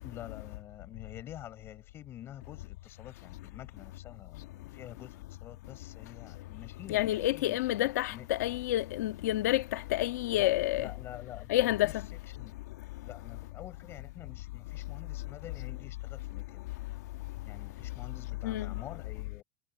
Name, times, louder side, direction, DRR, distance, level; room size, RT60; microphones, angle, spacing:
voice 1, 0.0-7.6 8.1-8.3 10.3-11.9 12.4-12.5 13.0-16.7 17.4-19.4, left 12 dB, 30° left, 6.2 m, -48 dB
voice 2, 6.9-10.9 11.5-11.9 18.4-18.7, left 15 dB, 85° left, 1.7 m, -29 dB
supercardioid pair, 170°, 9 cm